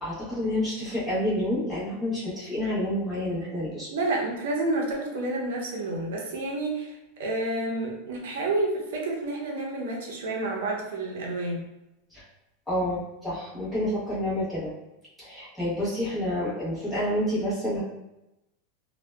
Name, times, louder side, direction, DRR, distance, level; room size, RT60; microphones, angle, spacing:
voice 1, 0.0-3.9 12.1-12.2 12.7-14.7 15.2-17.8, left 1 dB, 5° left, -11 dB, 1.0 m, -29 dB
voice 2, 3.9-11.6, right 2 dB, 80° right, -1 dB, 0.6 m, -29 dB
2.6 x 2.1 x 2.2 m, 0.94 s
supercardioid pair, 165°, 0 cm